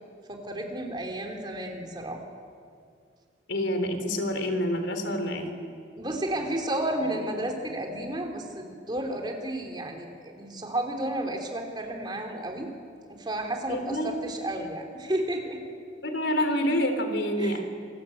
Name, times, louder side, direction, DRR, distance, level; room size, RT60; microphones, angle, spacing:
voice 1, 0.3-2.2 6.0-12.7 13.2-15.6 17.4-17.6, right 1 dB, 25° right, 3 dB, 3.4 m, -32 dB
voice 2, 3.5-5.5 13.7-14.1 16.0-17.7, equal, 90° left, 7 dB, 3.3 m, -27 dB
27.5 x 20.5 x 8.7 m, 2.3 s
head